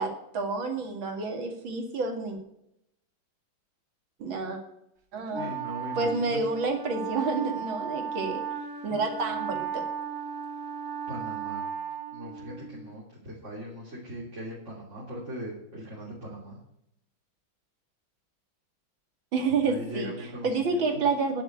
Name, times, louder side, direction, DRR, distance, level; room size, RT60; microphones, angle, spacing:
voice 1, 0.0-2.4 4.2-4.6 5.1-5.5 6.0-8.4 8.8-9.9 19.3-20.1 20.4-21.4, right 4 dB, 75° right, 4 dB, 3.0 m, -29 dB
voice 2, 5.3-6.4 11.1-11.6 12.1-16.6 19.6-20.8, equal, 35° right, -5 dB, 3.6 m, -39 dB
Wind instrument woodwind instrument, 5.3-12.8, right 7 dB, 50° right, 1.7 m, -35 dB
10.5 x 7.8 x 8.0 m, 0.77 s
omnidirectional pair, 2.2 m